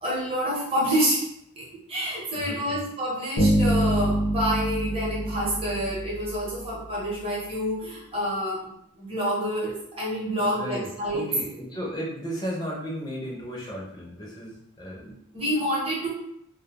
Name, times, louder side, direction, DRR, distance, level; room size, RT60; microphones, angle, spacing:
voice 1, 0.0-1.3 1.6-8.7 9.0-11.3 15.0-16.1, equal, 30° right, -6 dB, 0.7 m, -28 dB
voice 2, 2.4-2.8 10.4-15.0, equal, 20° left, -3 dB, 0.5 m, -35 dB
Bass guitar, 3.4-6.5, right 1 dB, 65° left, 0.7 m, -25 dB
2.1 x 2.1 x 2.8 m, 0.77 s
head